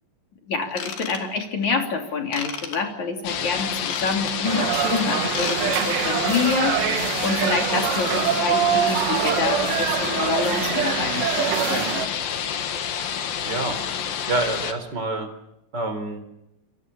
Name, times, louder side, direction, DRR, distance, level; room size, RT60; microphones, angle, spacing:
voice 1, 0.5-12.0, left 4 dB, 45° left, 3 dB, 4.3 m, -27 dB
Ratchet pawl / Tools, 0.7-1.6 2.3-2.8 3.6-4.5 5.2-5.6 5.8-6.0 6.5-6.6, left 6 dB, 80° left, 5.1 m, -33 dB
sound 1, 3.2-14.7, left 8 dB, 65° left, 3.3 m, -28 dB
sound 2, 4.4-12.1, right 10 dB, 80° right, 3.5 m, -24 dB
voice 2, 13.4-15.3 15.7-16.2, right 2 dB, 25° right, 8 dB, 4.0 m, -28 dB
30.0 x 24.5 x 7.1 m, 0.85 s
omnidirectional pair, 4.9 m